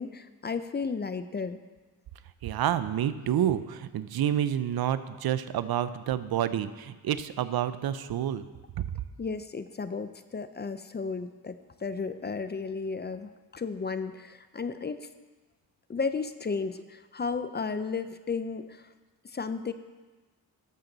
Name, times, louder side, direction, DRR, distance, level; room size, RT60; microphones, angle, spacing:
voice 1, 0.0-1.6 9.2-15.1 15.9-18.9 19.2-19.7, left 4 dB, 30° left, 11 dB, 0.4 m, -34 dB
voice 2, 2.4-8.4, right 10 dB, 75° right, 14 dB, 0.5 m, -29 dB
12.0 x 6.8 x 3.9 m, 1.3 s
cardioid pair, 80°, 38 cm